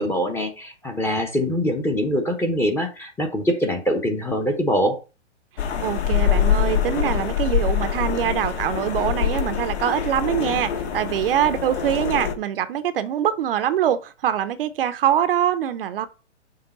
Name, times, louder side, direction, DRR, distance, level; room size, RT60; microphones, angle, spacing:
voice 1, 0.0-5.0, equal, 5° left, 0.9 m, -23 dB
sound 1, 5.6-12.3, left 8 dB, 65° left, 1.5 m, -24 dB
voice 2, 5.8-16.1, right 10 dB, 50° right, 0.7 m, -23 dB
6.7 x 3.6 x 5.3 m
hypercardioid pair, 140°, 36 cm